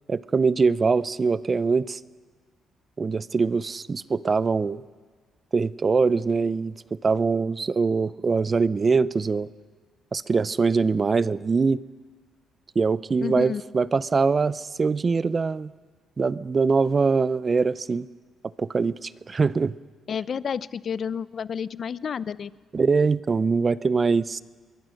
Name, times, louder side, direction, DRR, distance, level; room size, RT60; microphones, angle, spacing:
voice 1, 0.1-2.0 3.0-4.8 5.5-9.5 10.1-11.8 12.8-15.7 16.2-18.1 18.6-19.7 22.7-24.4, right 4 dB, 35° right, 17 dB, 0.6 m, -23 dB
voice 2, 13.2-13.6 20.1-22.5, left 7 dB, 50° left, 17 dB, 0.6 m, -30 dB
24.5 x 22.0 x 6.5 m, 1.5 s
cardioid pair, 90°, 0 cm